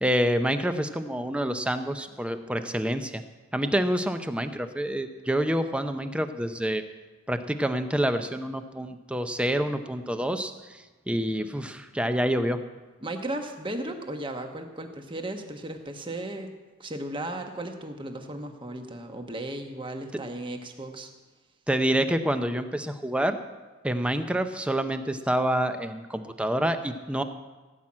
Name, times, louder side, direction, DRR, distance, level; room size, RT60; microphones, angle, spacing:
voice 1, 0.0-3.2 3.5-6.8 7.3-12.6 21.7-23.4 23.8-27.2, equal, 5° right, 8 dB, 0.5 m, -27 dB
voice 2, 13.0-16.5 16.8-21.1, right 1 dB, 25° right, 5 dB, 1.1 m, -35 dB
16.5 x 6.0 x 8.7 m, 1.2 s
head